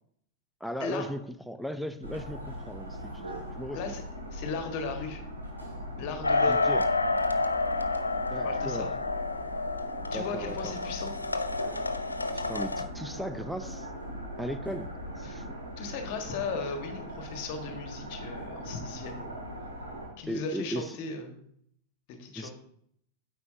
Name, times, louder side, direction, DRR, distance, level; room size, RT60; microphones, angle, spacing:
voice 1, 0.6-3.8 6.5-6.8 8.3-8.9 10.1-10.7 12.3-13.9 14.4-15.5 20.3-21.0 22.4-22.5, equal, ahead, 10 dB, 0.5 m, -37 dB
sound 1, 2.0-20.1, equal, 85° right, 2.5 m, -40 dB
voice 2, 4.3-5.2 6.0-6.7 8.4-8.9 10.1-11.1 15.2-15.3 15.8-19.4 20.2-21.4 22.1-22.5, left 4 dB, 45° left, 5 dB, 1.6 m, -36 dB
sound 2, 6.2-12.8, left 3 dB, 80° left, 0.5 m, -29 dB
9.4 x 7.9 x 2.8 m, 0.68 s
figure-of-eight pair, 90°, 0 cm